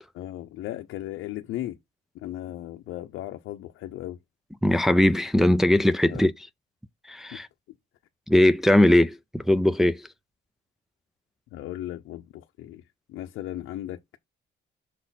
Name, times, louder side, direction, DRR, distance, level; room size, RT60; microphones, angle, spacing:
voice 1, 0.2-1.8 2.1-4.2 6.1-6.2 11.5-12.8 13.1-14.2, left 13 dB, 85° left, 0.7 m, -36 dB
voice 2, 4.6-6.3 7.1-7.5 8.3-10.1, left 1 dB, ahead, 0.5 m, -20 dB
6.4 x 4.1 x 4.0 m
cardioid pair, 90°, 20 cm